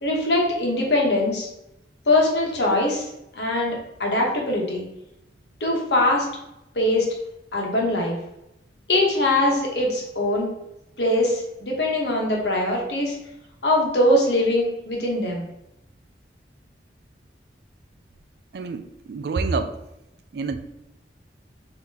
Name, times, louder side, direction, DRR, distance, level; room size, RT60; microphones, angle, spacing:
voice 1, 0.0-1.5 2.1-3.1 3.3-4.8 5.6-6.2 6.7-7.1 7.5-8.2 8.9-10.5 11.0-13.1 13.6-15.4, left 1 dB, 70° left, -1 dB, 1.1 m, -22 dB
voice 2, 18.5-19.8 20.3-20.6, right 4 dB, 60° right, 8 dB, 0.4 m, -27 dB
3.7 x 2.9 x 4.0 m, 0.87 s
head